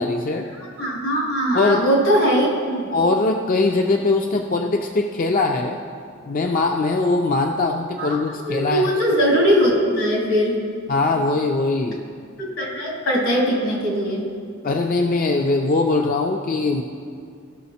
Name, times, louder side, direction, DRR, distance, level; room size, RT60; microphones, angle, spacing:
voice 1, 0.0-0.5 1.5-1.8 2.9-5.8 6.3-8.9 10.9-12.1 14.6-16.8, left 3 dB, 40° left, 3 dB, 0.4 m, -21 dB
voice 2, 0.6-2.9 8.0-8.2 8.4-10.6 12.4-14.3, equal, 80° left, -3 dB, 2.7 m, -20 dB
15.5 x 6.3 x 4.2 m, 2.3 s
head